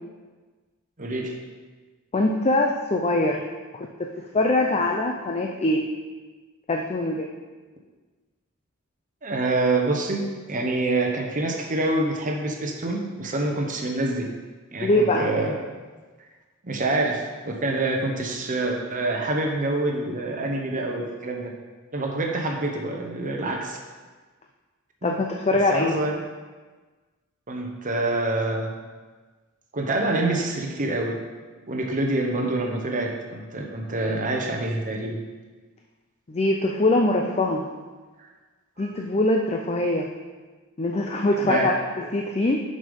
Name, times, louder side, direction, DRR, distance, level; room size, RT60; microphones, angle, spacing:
voice 1, 1.0-1.3 9.2-10.2 10.5-14.3 14.7-15.6 16.6-21.5 21.9-23.8 25.0-25.1 25.5-26.1 27.5-28.8 29.7-31.2 31.7-35.2 38.8-38.9 41.4-41.7, right 2 dB, 40° right, 1 dB, 1.0 m, -26 dB
voice 2, 2.1-3.4 4.0-5.9 6.7-7.4 14.8-15.3 25.0-25.9 34.0-34.1 36.3-37.7 38.8-40.1 40.8-42.6, left 2 dB, 30° left, 2 dB, 0.5 m, -23 dB
6.7 x 5.4 x 5.3 m, 1.4 s
head